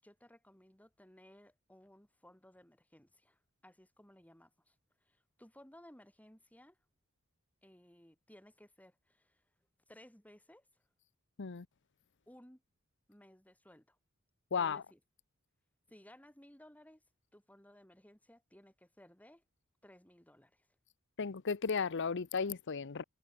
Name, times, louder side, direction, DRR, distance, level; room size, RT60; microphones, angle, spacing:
voice 1, 0.0-4.8 5.0-6.8 7.6-9.4 9.9-10.7 12.3-12.6 13.1-14.0 14.5-15.0 15.9-17.0 17.3-19.4 19.8-20.7, left 1 dB, 5° left, 7.0 m, -60 dB
voice 2, 14.5-14.8 21.2-23.0, left 5 dB, 55° left, 0.7 m, -34 dB
head